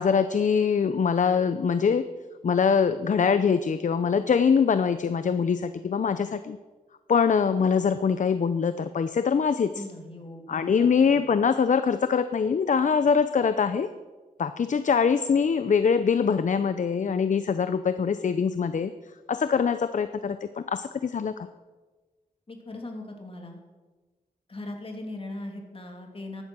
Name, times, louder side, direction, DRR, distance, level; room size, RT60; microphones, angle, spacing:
voice 1, 0.0-2.0 2.4-6.6 7.1-9.8 10.5-13.9 14.4-18.9 19.3-21.3, left 6 dB, 60° left, 11 dB, 0.6 m, -23 dB
voice 2, 9.7-11.2 22.5-23.6 24.5-26.4, left 2 dB, 40° left, 2 dB, 2.8 m, -39 dB
14.5 x 11.0 x 6.2 m, 1.3 s
wide cardioid pair, 95°, 15 cm